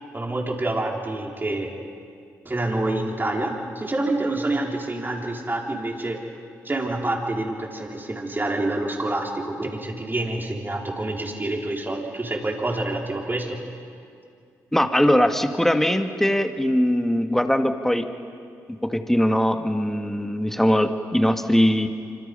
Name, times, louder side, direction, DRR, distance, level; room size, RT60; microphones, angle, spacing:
voice 1, 0.1-1.7 2.4-6.2 6.6-13.6, right 2 dB, 25° right, 0 dB, 4.5 m, -27 dB
voice 2, 14.7-18.0 18.8-21.9, equal, 5° left, 6 dB, 1.8 m, -21 dB
25.5 x 25.5 x 5.6 m, 2.4 s
supercardioid pair, 50°, 8 cm